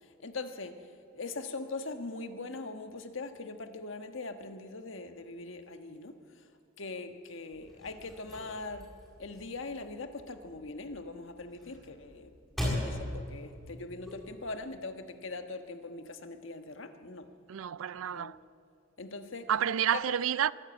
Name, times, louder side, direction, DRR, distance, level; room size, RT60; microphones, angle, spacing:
voice 1, 0.0-0.7 1.1-6.1 6.8-8.9 9.2-12.3 12.8-17.3 17.9-18.3 19.0-19.5 19.9-20.2, left 3 dB, 75° left, 1.4 m, -41 dB
sound 1, 7.5-14.6, left 1 dB, ahead, 7.4 m, -40 dB
voice 2, 17.5-18.4 19.5-20.5, right 9 dB, 85° right, 0.4 m, -29 dB
24.0 x 12.5 x 8.8 m
head